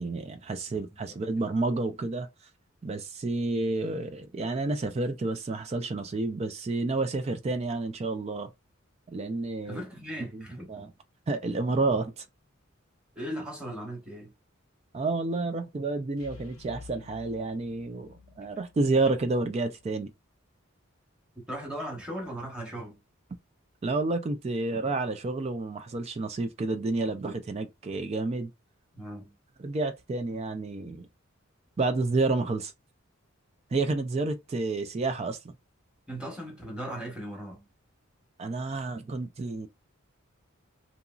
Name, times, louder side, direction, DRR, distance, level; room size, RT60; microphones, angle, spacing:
voice 1, 0.0-2.3 2.8-8.5 9.1-9.8 10.2-10.9 11.3-12.3 14.9-20.1 23.8-28.5 29.6-31.1 31.8-32.7 33.7-35.5 38.4-39.7, right 3 dB, 30° right, 0.3 m, -30 dB
voice 2, 0.7-1.2 9.7-10.9 13.1-14.3 21.5-23.0 28.9-29.3 36.1-37.7, right 1 dB, 5° right, 1.0 m, -38 dB
sound 1, 16.2-19.9, left 4 dB, 85° left, 0.5 m, -51 dB
2.8 x 2.5 x 2.3 m
head